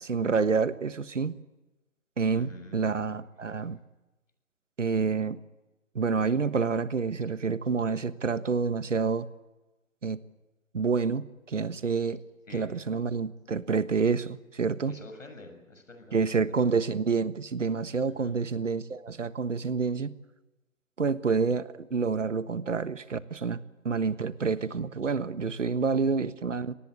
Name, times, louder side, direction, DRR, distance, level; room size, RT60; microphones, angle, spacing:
voice 1, 0.0-1.4 2.2-3.8 4.8-5.4 5.9-9.3 10.0-10.2 10.7-12.2 12.5-14.9 16.1-20.1 21.0-26.7, right 5 dB, 65° right, 14 dB, 1.4 m, -28 dB
voice 2, 2.3-2.9 12.5-12.8 14.9-16.5 18.0-18.4, left 2 dB, 70° left, 7 dB, 6.9 m, -48 dB
25.0 x 19.0 x 8.2 m, 1.1 s
figure-of-eight pair, 150°, 40 cm